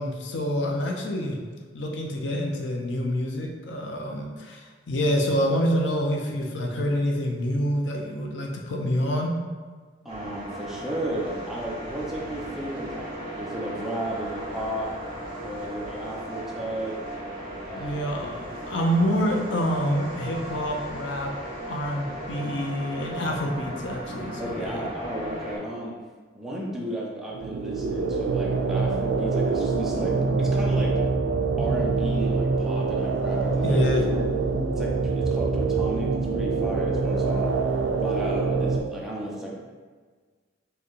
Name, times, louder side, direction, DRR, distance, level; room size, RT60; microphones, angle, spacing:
voice 1, 0.0-1.4 1.7-9.3 17.8-18.4 18.7-21.3 21.7-24.9 33.6-34.0, equal, 70° left, 1 dB, 0.6 m, -27 dB
voice 2, 10.0-14.9 15.4-17.0 17.7-18.2 22.0-22.4 24.4-26.0 26.4-31.0 31.6-34.2 34.8-37.5 38.0-39.5, right 1 dB, ahead, -4 dB, 0.5 m, -34 dB
sound 1, 10.1-25.6, right 1 dB, 30° right, 0.8 m, -36 dB
sound 2, 27.3-38.8, right 4 dB, 80° right, 0.3 m, -25 dB
4.5 x 2.2 x 3.1 m, 1.5 s
head